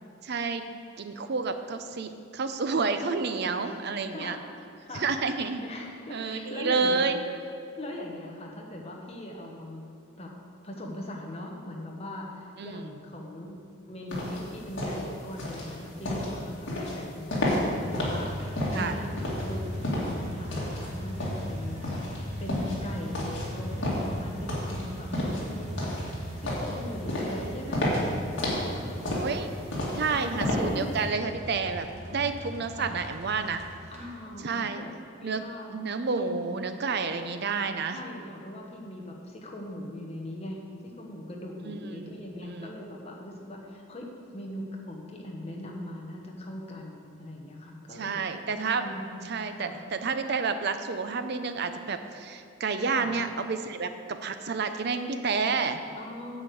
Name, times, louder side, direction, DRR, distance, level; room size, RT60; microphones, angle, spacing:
voice 1, 0.2-0.6 1.0-4.4 4.9-5.6 6.1-7.2 12.6-12.8 18.7-19.0 29.2-29.5 30.0-33.6 34.4-34.8 35.2-35.4 35.7-38.0 41.6-42.1 42.5-42.7 48.0-48.9 49.2-55.8, right 4 dB, 55° right, 8 dB, 0.6 m, -30 dB
voice 2, 3.5-3.8 4.1-4.4 4.8-5.1 5.6-7.1 7.8-9.8 10.2-10.3 10.6-13.6 13.9-19.1 19.4-22.0 22.4-27.9 28.3-29.3 30.1-31.0 32.0-32.4 32.8-32.9 33.9-35.8 36.2-36.6 37.9-40.7 40.9-48.1 48.8-49.2 49.6-49.7 52.9-53.1 56.0-56.4, left 1 dB, 30° left, 0 dB, 1.2 m, -40 dB
sound 1, 14.1-31.0, left 1 dB, 60° left, 2.2 m, -31 dB
sound 2, 17.4-34.1, equal, 35° right, 1.2 m, -39 dB
9.0 x 5.0 x 7.8 m, 2.5 s
head